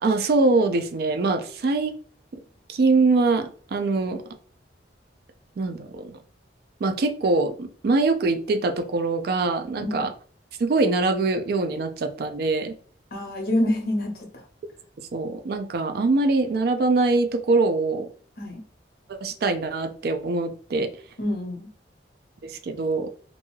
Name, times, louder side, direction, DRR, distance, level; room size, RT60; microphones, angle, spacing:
voice 1, 0.0-1.9 2.7-4.2 5.6-6.2 6.8-10.1 10.6-12.7 15.1-18.1 19.1-20.9 22.4-23.1, right 3 dB, 55° right, 8 dB, 0.4 m, -23 dB
voice 2, 13.1-14.4 18.4-18.6 21.2-21.7, left 1 dB, 55° left, 1 dB, 0.8 m, -27 dB
2.5 x 2.2 x 3.1 m, 0.43 s
head